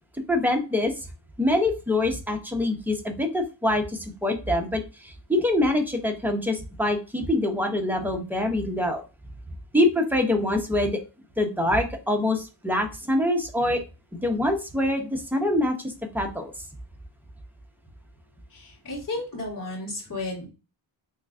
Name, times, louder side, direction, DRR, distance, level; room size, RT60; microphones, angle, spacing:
voice 1, 0.3-0.9 1.4-9.0 9.7-11.0 11.4-13.8 14.2-16.5, left 1 dB, 5° right, 3 dB, 0.6 m, -25 dB
voice 2, 18.5-20.5, left 2 dB, 40° left, -5 dB, 1.8 m, -33 dB
3.8 x 3.2 x 2.4 m, 0.31 s
wide cardioid pair, 110°, 48 cm